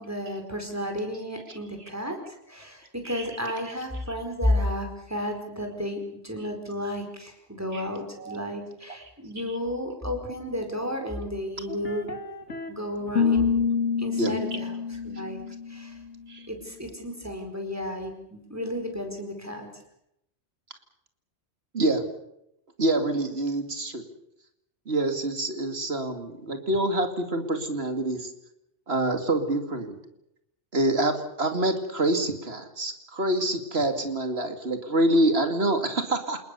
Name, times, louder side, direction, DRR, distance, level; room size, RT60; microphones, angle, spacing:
voice 1, 0.0-12.1 12.7-13.5 14.0-15.4 15.7-16.0 16.5-19.7, left 1 dB, 15° right, 3 dB, 4.8 m, -32 dB
sound 1, 11.7-12.7 13.1-16.0, left 6 dB, 75° left, 2.7 m, -27 dB
voice 2, 21.7-22.0 22.8-24.0 24.9-28.3 28.9-30.0 30.7-36.4, right 1 dB, 55° right, 7 dB, 2.6 m, -26 dB
28.5 x 19.0 x 6.9 m, 0.79 s
omnidirectional pair, 1.2 m